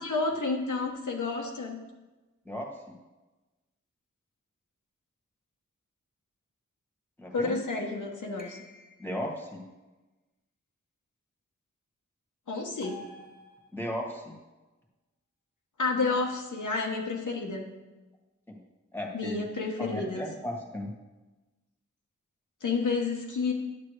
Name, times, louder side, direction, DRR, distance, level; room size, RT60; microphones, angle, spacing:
voice 1, 0.0-1.8 7.3-8.6 12.5-13.0 15.8-17.7 19.1-20.3 22.6-23.5, left 4 dB, 90° left, 0 dB, 1.1 m, -30 dB
voice 2, 2.5-2.9 7.2-7.6 9.0-9.6 13.7-14.4 18.5-18.6 18.9-19.5 19.8-20.9, left 1 dB, 5° left, 0 dB, 1.7 m, -36 dB
sound 1, 8.4-9.3 12.8-14.0, left 2 dB, 30° left, 1.3 m, -50 dB
9.6 x 7.4 x 3.3 m, 1.1 s
wide cardioid pair, 70°, 30 cm